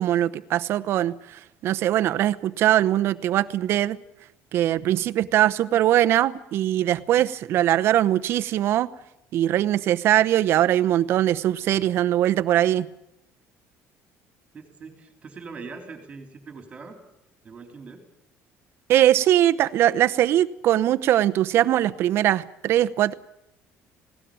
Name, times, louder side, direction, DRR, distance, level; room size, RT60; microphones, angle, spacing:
voice 1, 0.0-4.0 4.5-8.9 9.3-12.9 18.9-23.1, right 12 dB, 50° right, 12 dB, 0.8 m, -21 dB
voice 2, 14.5-17.0 17.4-18.0, right 4 dB, 25° right, 4 dB, 3.8 m, -41 dB
20.0 x 18.0 x 8.8 m, 0.86 s
cardioid pair, 165°, 5 cm